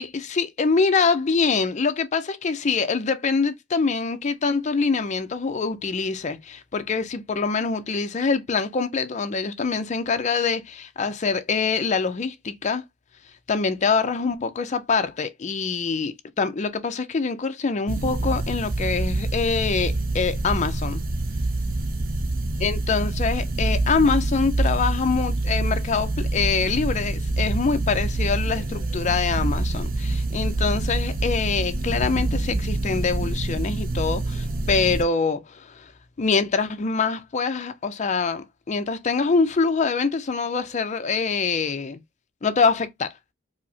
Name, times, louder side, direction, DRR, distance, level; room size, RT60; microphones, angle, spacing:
voice 1, 0.0-12.8 13.5-21.0 22.6-35.9 36.2-42.0 42.4-43.1, left 4 dB, 35° left, 0.4 m, -24 dB
sound 1, 17.9-35.0, right 2 dB, 45° right, 0.5 m, -26 dB
4.7 x 2.0 x 2.7 m
head